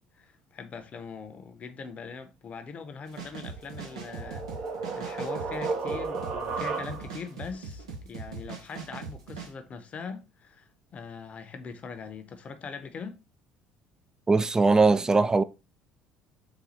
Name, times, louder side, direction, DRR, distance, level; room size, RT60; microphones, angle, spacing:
voice 1, 0.2-13.2, left 5 dB, 40° left, 0.7 m, -41 dB
sound 1, 3.1-9.5, right 5 dB, 90° right, 0.9 m, -41 dB
sound 2, 3.5-7.3, right 4 dB, 55° right, 0.9 m, -34 dB
voice 2, 14.3-15.4, right 3 dB, 20° right, 0.3 m, -20 dB
4.0 x 2.3 x 4.2 m
hypercardioid pair, 65°, 3 cm